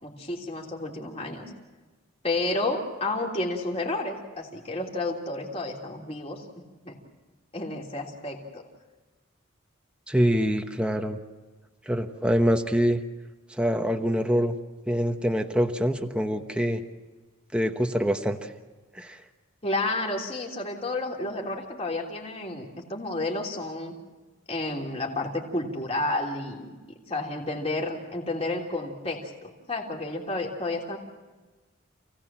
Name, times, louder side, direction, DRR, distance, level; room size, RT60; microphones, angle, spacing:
voice 1, 0.0-1.5 2.2-6.5 6.8-7.0 7.5-8.6 19.6-24.0 24.5-26.7 27.1-31.0, left 2 dB, 30° left, 0 dB, 3.2 m, -31 dB
voice 2, 10.1-11.2 11.9-13.0 13.6-14.5 14.9-16.8 17.5-18.4 18.9-19.2, equal, 5° right, 5 dB, 1.0 m, -25 dB
28.5 x 17.5 x 7.5 m, 1.3 s
head